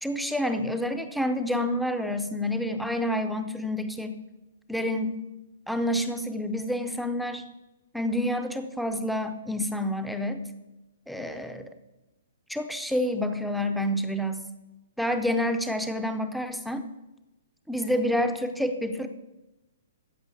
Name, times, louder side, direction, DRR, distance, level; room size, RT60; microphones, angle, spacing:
voice 1, 0.0-4.2 4.7-5.1 5.7-7.4 7.9-10.4 11.1-11.7 12.5-14.4 15.0-16.8 17.7-19.1, left 1 dB, ahead, 7 dB, 0.6 m, -28 dB
14.5 x 5.7 x 8.3 m, 1.0 s
hypercardioid pair, 165°, 0 cm